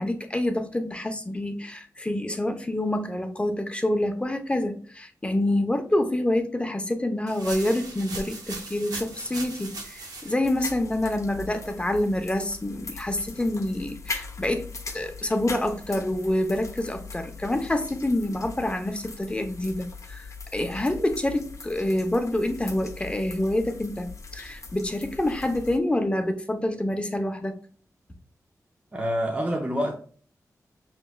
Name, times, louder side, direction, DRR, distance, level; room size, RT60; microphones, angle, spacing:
voice 1, 0.0-27.6, left 1 dB, 20° left, 0.7 m, -27 dB
sound 1, 7.3-10.3, right 3 dB, 85° right, 0.9 m, -38 dB
sound 2, 10.4-25.8, left 4 dB, 55° left, 0.7 m, -40 dB
voice 2, 28.9-29.9, equal, 20° right, 0.8 m, -26 dB
5.9 x 3.1 x 2.2 m
wide cardioid pair, 80°, 6 cm